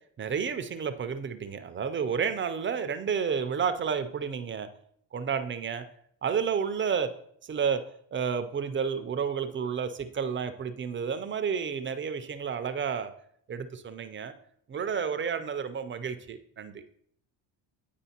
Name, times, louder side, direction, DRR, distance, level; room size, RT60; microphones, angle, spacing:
voice 1, 0.2-4.7 5.1-5.8 6.2-7.1 7.4-7.8 8.1-13.1 13.5-14.3 14.7-16.8, right 6 dB, 30° right, 9 dB, 0.3 m, -31 dB
9.1 x 5.0 x 2.8 m, 0.67 s
cardioid pair, 120°, 47 cm